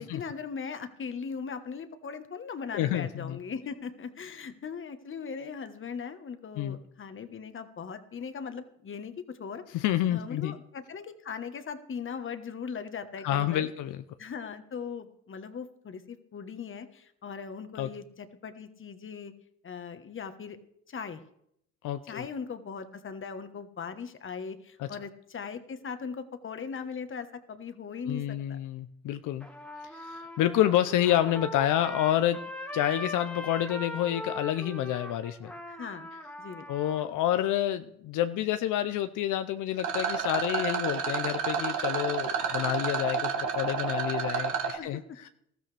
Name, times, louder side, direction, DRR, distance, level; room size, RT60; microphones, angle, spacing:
voice 1, 0.0-13.7 14.2-19.3 19.6-20.6 20.9-21.2 22.1-28.6 35.7-36.1 36.4-36.7 44.8-45.3, left 6 dB, 40° left, 9 dB, 1.3 m, -39 dB
voice 2, 2.7-3.4 6.6-6.8 9.7-10.6 13.2-14.0 17.8-17.9 21.8-22.3 24.8-24.9 28.0-29.5 29.9-32.4 32.7-35.5 36.7-45.3, left 12 dB, 85° left, 10 dB, 0.6 m, -28 dB
Trumpet, 29.4-37.1, left 1 dB, 5° left, 1.5 m, -40 dB
Rattle, 39.8-44.8, right 6 dB, 85° right, 1.7 m, -30 dB
19.5 x 13.5 x 3.4 m, 0.73 s
cardioid pair, 90°, 30 cm